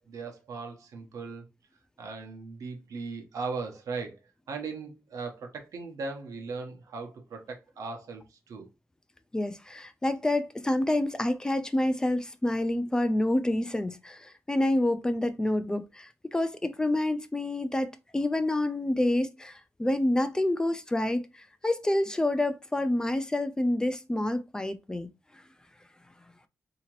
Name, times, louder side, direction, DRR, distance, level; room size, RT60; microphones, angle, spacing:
voice 1, 0.0-1.5 2.0-4.2 4.5-8.7, right 4 dB, 85° right, 0.9 m, -38 dB
voice 2, 9.3-25.1, left 1 dB, 15° left, 0.3 m, -28 dB
3.7 x 2.8 x 3.0 m
wide cardioid pair, 140°, 6 cm